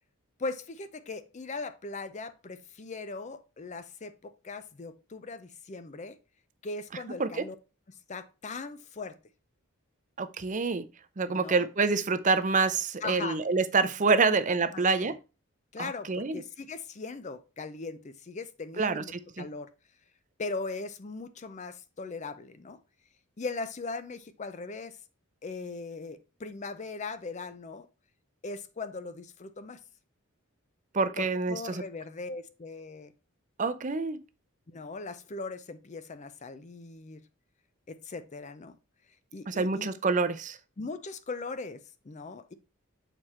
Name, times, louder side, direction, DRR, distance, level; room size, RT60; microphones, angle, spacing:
voice 1, 0.4-6.2 6.6-7.6 8.1-9.2 11.3-11.7 13.0-13.4 14.3-14.4 14.7-15.1 15.7-19.7 20.4-22.8 23.4-25.0 25.4-27.9 28.4-29.8 31.2-33.1 34.7-37.2 37.9-38.8 39.3-39.9 40.8-42.5, left 3 dB, 35° left, 0.5 m, -39 dB
voice 2, 10.2-10.8 11.2-15.1 15.8-16.4 18.8-19.0 19.4-19.5 30.9-31.8 33.6-34.2 39.5-40.6, right 4 dB, 35° right, 0.6 m, -27 dB
6.8 x 4.4 x 4.2 m
head